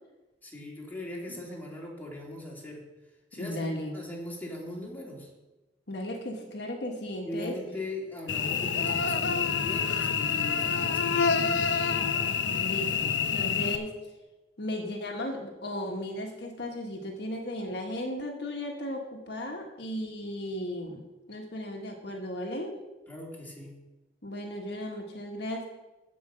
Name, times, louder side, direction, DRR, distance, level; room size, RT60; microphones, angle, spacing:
voice 1, 0.4-2.8 3.3-5.3 7.2-11.7 23.1-23.8, left 1 dB, 10° left, -3 dB, 3.0 m, -40 dB
voice 2, 3.4-3.9 5.9-7.5 12.5-13.9 14.6-21.0 21.3-22.7 24.2-25.7, left 1 dB, 65° left, 1 dB, 1.6 m, -35 dB
Cricket / Buzz, 8.3-13.8, left 6 dB, 85° left, 0.8 m, -27 dB
15.5 x 5.4 x 6.4 m, 1.1 s
head